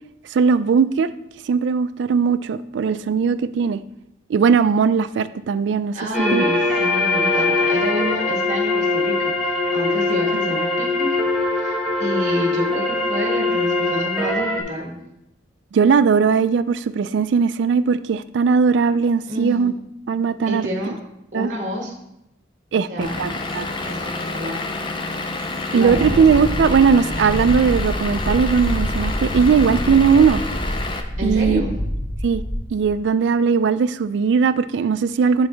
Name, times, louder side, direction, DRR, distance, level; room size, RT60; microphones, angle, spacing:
voice 1, 0.3-1.1 1.4-3.8 4.3-5.9 6.3-6.5 15.7-19.7 20.1-20.7 21.3-21.5 22.7-23.7 25.7-30.4 31.2-31.6 32.2-32.4 32.7-35.5, right 6 dB, 70° right, 14 dB, 0.3 m, -18 dB
voice 2, 5.9-11.2 11.5-15.0 19.3-19.8 20.5-20.9 21.3-21.9 22.7-23.2 23.8-24.6 25.7-26.3 31.2-31.7, equal, 40° right, 0 dB, 1.4 m, -28 dB
sound 1, 6.1-14.6, left 2 dB, ahead, 0.9 m, -21 dB
Vehicle / Engine, 23.0-31.0, left 2 dB, 25° left, 0.5 m, -29 dB
Wind, 25.8-32.9, equal, 75° left, 1.2 m, -27 dB
10.5 x 4.0 x 3.4 m, 0.85 s
head